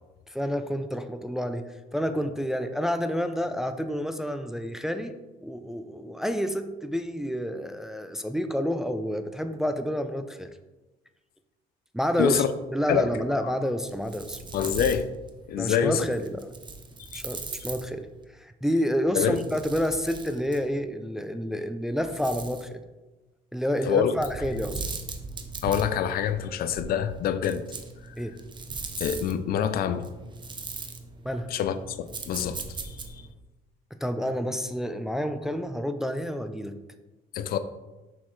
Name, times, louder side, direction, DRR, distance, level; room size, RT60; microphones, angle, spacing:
voice 1, 0.3-10.5 11.9-12.4 12.7-14.4 15.6-16.5 17.1-18.1 18.4-22.8 23.5-24.9 28.2-28.4 31.2-31.5 33.9-36.7, equal, 5° right, 0.4 m, -29 dB
sound 1, 13.8-18.2 19.1-20.8 21.9-22.7 24.2-33.3, right 4 dB, 25° right, 0.7 m, -40 dB
voice 2, 14.5-15.1 15.5-16.1 17.1-17.2 19.1-19.4 23.8-24.1 25.6-27.6 28.1-28.2 29.0-30.1 31.5-33.2 37.3-37.6, left 9 dB, 60° left, 0.5 m, -26 dB
6.3 x 5.7 x 3.1 m
cardioid pair, 110°, 17 cm